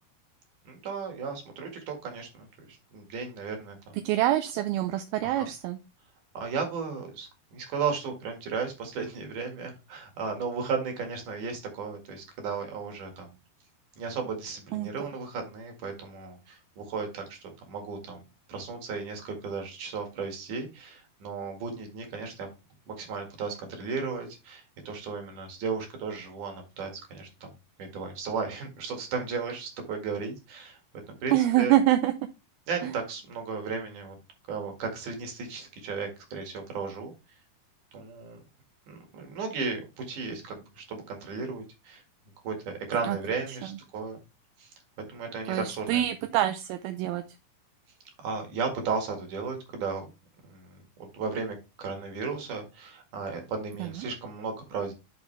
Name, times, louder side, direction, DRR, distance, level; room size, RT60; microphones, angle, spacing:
voice 1, 0.7-4.0 5.2-5.5 6.3-13.3 14.0-17.4 17.7-18.2 18.5-22.5 22.9-27.5 27.8-30.8 31.2-31.7 32.7-34.2 34.5-37.1 37.9-38.4 38.9-42.0 42.4-44.2 44.6-44.7 45.1-46.0 48.2-50.0 50.4-54.9, right 5 dB, 55° right, 3 dB, 3.1 m, -35 dB
voice 2, 4.1-5.8 14.7-14.9 31.3-32.1 32.8-32.9 43.1-43.2 45.5-47.2 53.8-53.9, right 13 dB, 80° right, 8 dB, 2.3 m, -25 dB
11.5 x 4.1 x 3.3 m, 0.28 s
omnidirectional pair, 4.5 m